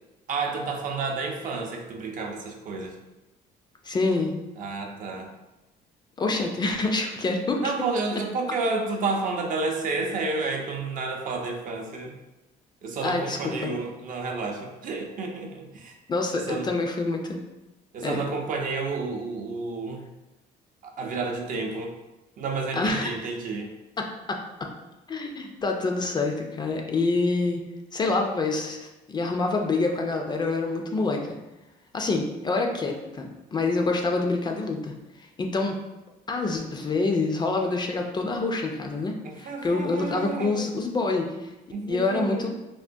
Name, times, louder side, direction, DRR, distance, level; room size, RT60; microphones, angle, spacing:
voice 1, 0.3-3.0 4.6-5.3 7.6-12.1 12.8-16.0 16.3-16.7 17.9-20.1 20.8-22.0 22.4-23.7 39.2-40.7 41.7-42.5, right 3 dB, 50° right, 2 dB, 0.5 m, -30 dB
voice 2, 3.8-4.4 6.2-7.6 13.0-13.7 16.1-17.4 18.0-18.2 22.7-23.1 24.0-24.7 25.1-27.6 27.9-31.4 31.9-35.8 36.3-41.5 41.9-42.5, left 3 dB, 25° left, 2 dB, 0.3 m, -27 dB
3.4 x 2.1 x 2.6 m, 1.0 s
cardioid pair, 110°, 17 cm